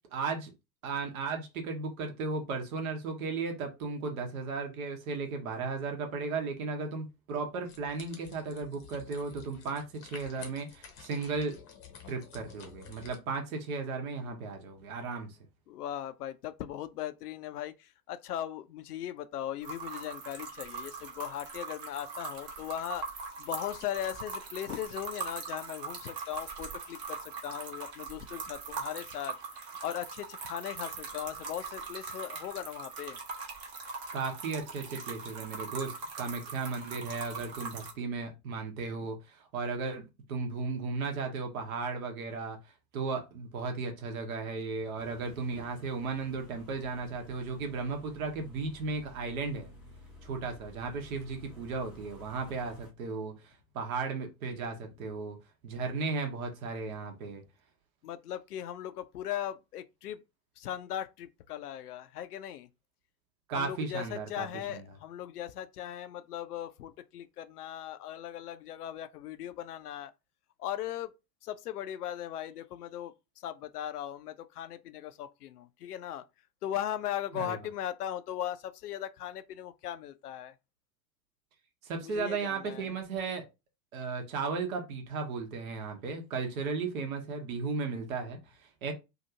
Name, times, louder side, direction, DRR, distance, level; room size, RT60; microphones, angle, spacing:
voice 1, 0.1-0.5 0.8-11.6 12.1-15.4 34.1-42.6 42.9-49.7 50.2-55.4 55.6-57.4 63.5-64.9 77.3-77.6 81.8-83.4 83.9-88.9, right 4 dB, 55° right, 0.9 m, -35 dB
sound 1, 7.6-13.2, left 7 dB, 30° left, 0.7 m, -51 dB
voice 2, 15.7-23.0 23.4-29.4 29.8-33.2 58.0-60.2 60.6-62.7 63.5-70.1 70.6-71.1 71.4-73.1 73.4-76.3 76.6-80.5 82.0-82.9, left 11 dB, 70° left, 0.5 m, -38 dB
sound 2, 19.6-37.9, right 5 dB, 30° right, 0.8 m, -41 dB
sound 3, 44.9-52.9, right 1 dB, 5° right, 0.4 m, -53 dB
2.8 x 2.4 x 2.7 m
figure-of-eight pair, 90°, 50 cm